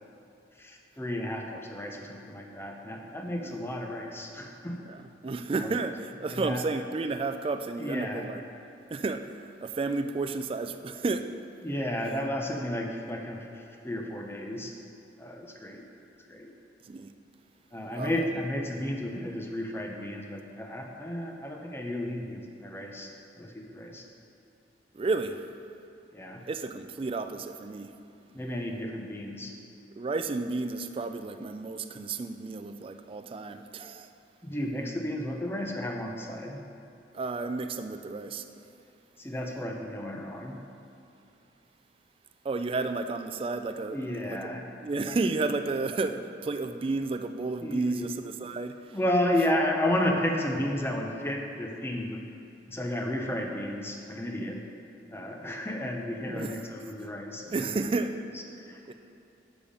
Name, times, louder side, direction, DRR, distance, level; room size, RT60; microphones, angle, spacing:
voice 1, 0.6-4.9 5.5-5.7 6.3-6.6 7.8-8.3 11.6-14.7 15.2-15.8 16.3-16.5 17.7-23.1 23.4-24.1 26.1-26.4 28.3-29.6 34.4-36.6 39.2-40.6 43.9-44.6 47.6-48.1 48.9-52.2 52.7-54.6 55.1-57.8 58.6-58.9, left 1 dB, 15° left, 1 dB, 0.7 m, -32 dB
voice 2, 4.9-8.4 8.9-11.3 16.9-17.1 17.9-18.3 24.9-25.4 26.5-27.9 30.0-34.1 37.1-38.5 42.4-44.0 44.2-44.5 44.8-49.0 56.3-56.6 57.5-58.1 58.9-59.0, right 3 dB, 30° right, 8 dB, 0.3 m, -32 dB
6.9 x 6.9 x 5.1 m, 2.7 s
head